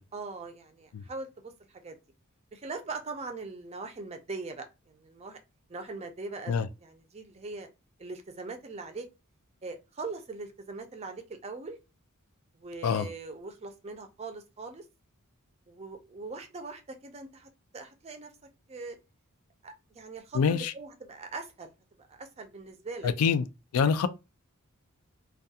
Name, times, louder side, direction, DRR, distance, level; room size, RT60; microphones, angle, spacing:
voice 1, 0.1-2.0 2.5-5.4 5.7-7.7 8.0-9.1 9.6-11.8 12.5-14.8 15.7-18.3 18.7-19.0 19.6-21.7 22.0-23.1, right 3 dB, 30° right, 0.4 m, -41 dB
voice 2, 20.3-20.7 23.0-23.5 23.7-24.1, left 6 dB, 75° left, 0.3 m, -25 dB
2.3 x 2.3 x 2.7 m
head